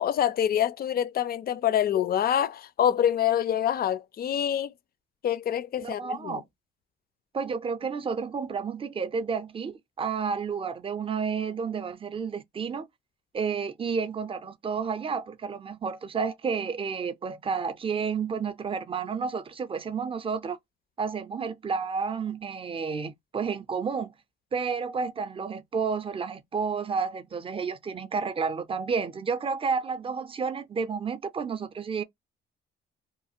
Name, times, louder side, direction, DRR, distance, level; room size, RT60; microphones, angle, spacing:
voice 1, 0.0-4.7 5.2-6.4, left 10 dB, 50° left, 0.4 m, -26 dB
voice 2, 5.8-6.4 7.3-12.9 13.3-20.6 21.0-24.1 24.5-32.0, right 5 dB, 25° right, 0.5 m, -31 dB
2.5 x 2.4 x 2.7 m
cardioid pair, 90°, 20 cm